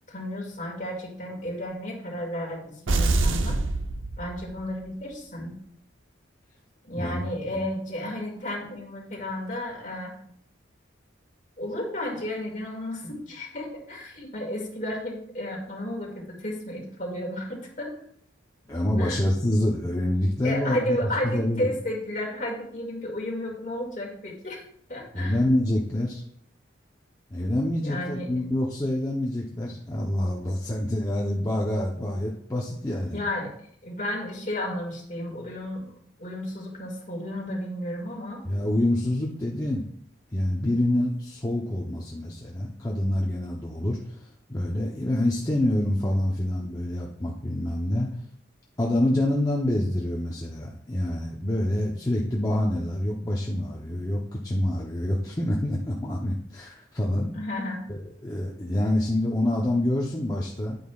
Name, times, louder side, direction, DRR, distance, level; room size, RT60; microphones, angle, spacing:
voice 1, 0.1-3.6 4.2-5.6 6.8-10.1 11.6-18.0 19.0-19.2 20.4-24.6 24.9-25.4 27.8-28.3 33.1-33.5 33.8-35.9 36.2-38.5 57.3-57.9, left 1 dB, 40° left, -1 dB, 2.1 m, -32 dB
sound 1, 2.9-4.7, right 2 dB, 80° right, 0.7 m, -25 dB
voice 2, 18.7-21.0 21.2-21.7 25.1-26.2 27.3-33.2 38.5-39.9 40.3-48.1 48.8-57.3 57.9-60.8, left 1 dB, 20° left, -3 dB, 0.8 m, -26 dB
9.5 x 8.9 x 2.4 m, 0.65 s
head